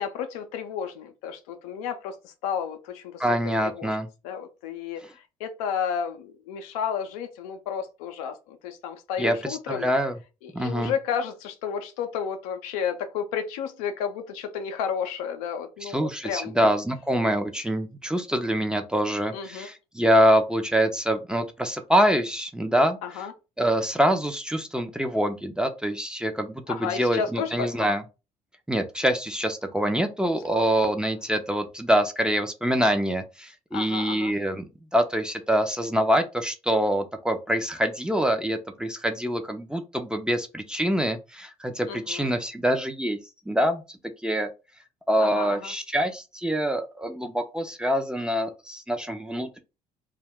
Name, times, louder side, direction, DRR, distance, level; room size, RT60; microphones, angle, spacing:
voice 1, 0.0-3.2 3.6-3.9 4.2-9.9 10.4-16.6 19.3-19.7 23.0-23.3 26.7-27.9 30.5-30.7 33.7-34.3 41.9-42.3 45.2-45.7, left 7 dB, 85° left, 0.5 m, -32 dB
voice 2, 3.2-4.1 9.2-10.2 10.5-10.9 15.8-23.0 23.6-28.0 28.7-34.6 34.9-43.2 43.5-44.5 45.1-49.6, equal, 5° right, 0.5 m, -25 dB
2.3 x 2.1 x 3.4 m
hypercardioid pair, 65°, 19 cm